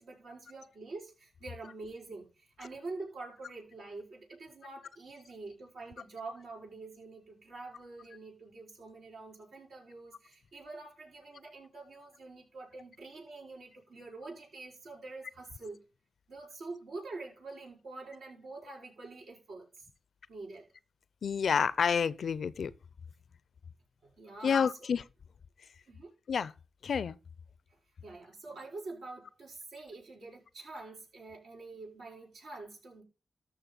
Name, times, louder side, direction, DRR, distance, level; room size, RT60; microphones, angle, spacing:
voice 1, 0.0-15.8 16.3-19.9 20.3-20.7 24.0-24.7 25.9-26.1 27.7-33.0, right 3 dB, 85° right, 5.2 m, -46 dB
voice 2, 21.2-22.7 24.4-25.0 26.3-26.5 26.8-27.2, left 6 dB, 75° left, 0.5 m, -29 dB
13.5 x 5.8 x 4.0 m
cardioid pair, 50°, 0 cm